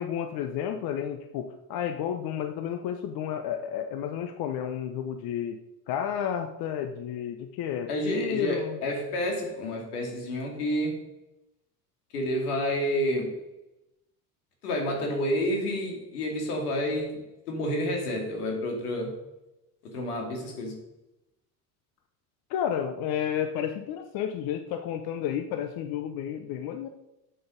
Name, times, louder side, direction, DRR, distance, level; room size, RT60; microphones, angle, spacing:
voice 1, 0.0-5.6 5.9-8.8 22.5-26.9, left 9 dB, 55° left, 7 dB, 0.9 m, -31 dB
voice 2, 7.9-11.1 12.1-13.4 14.6-19.2 19.8-20.8, equal, 80° left, 2 dB, 2.7 m, -29 dB
8.0 x 7.8 x 5.2 m, 0.92 s
hypercardioid pair, 70°, 45 cm